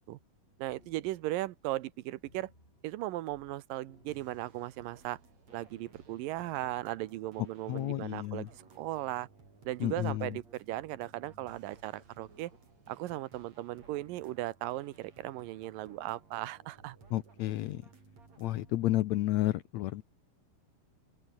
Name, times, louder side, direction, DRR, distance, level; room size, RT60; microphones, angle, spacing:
voice 1, 0.6-2.5 2.8-5.2 5.5-8.5 8.8-9.3 9.7-12.5 12.9-17.0, right 16 dB, 90° right, 2.6 m, -37 dB
sound 1, 0.7-1.9 2.3-3.6 3.8-5.1 5.7-5.8 6.6-7.4, left 1 dB, 15° left, 5.9 m, -64 dB
sound 2, 4.1-18.9, right 4 dB, 50° right, 6.5 m, -58 dB
voice 2, 7.7-8.5 9.8-10.4 17.1-17.8 18.4-20.0, left 15 dB, 80° left, 1.7 m, -31 dB
open air
omnidirectional pair, 3.9 m